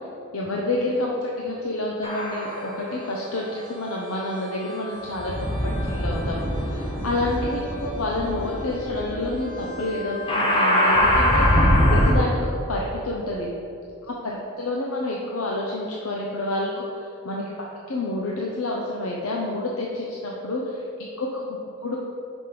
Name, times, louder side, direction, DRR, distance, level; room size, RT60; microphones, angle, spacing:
voice 1, 0.3-13.5 14.0-22.0, left 2 dB, 75° left, -2 dB, 0.7 m, -29 dB
sound 1, 2.0-2.8 3.6-12.1, equal, 25° left, 0.9 m, -24 dB
5.2 x 5.1 x 5.8 m, 2.6 s
head